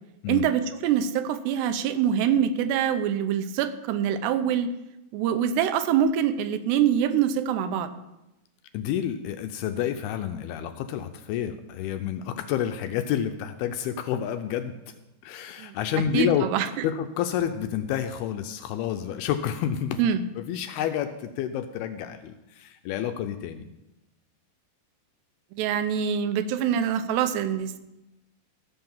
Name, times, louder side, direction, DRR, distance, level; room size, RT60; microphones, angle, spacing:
voice 1, 0.3-4.7 5.1-7.9 15.6-15.8 16.1-16.9 20.0-20.2 25.5-27.8, right 9 dB, 85° right, 10 dB, 2.8 m, -25 dB
voice 2, 8.7-14.7 15.2-16.5 16.8-20.0 20.4-23.7, left 10 dB, 80° left, 8 dB, 2.3 m, -29 dB
14.0 x 5.8 x 7.1 m, 0.93 s
omnidirectional pair, 4.9 m